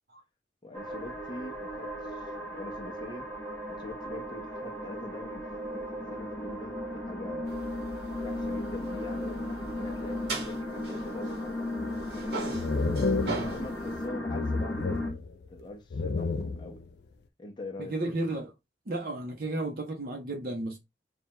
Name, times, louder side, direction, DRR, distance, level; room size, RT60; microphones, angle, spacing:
voice 1, 0.6-3.3 3.7-5.4 5.7-7.5 8.2-12.4 13.4-15.2 15.5-16.8 17.4-17.9, left 2 dB, 25° left, 0.6 m, -43 dB
sound 1, 0.7-15.1, left 1 dB, 5° left, 1.0 m, -36 dB
sound 2, 7.5-11.7 12.0-14.1, right 3 dB, 70° right, 1.1 m, -40 dB
sound 3, 11.8-12.2 12.5-14.0 14.3-15.6 15.9-16.9, left 3 dB, 70° left, 0.4 m, -31 dB
voice 2, 17.8-18.5 18.9-20.8, right 2 dB, 55° right, 0.8 m, -33 dB
3.3 x 2.4 x 4.3 m
head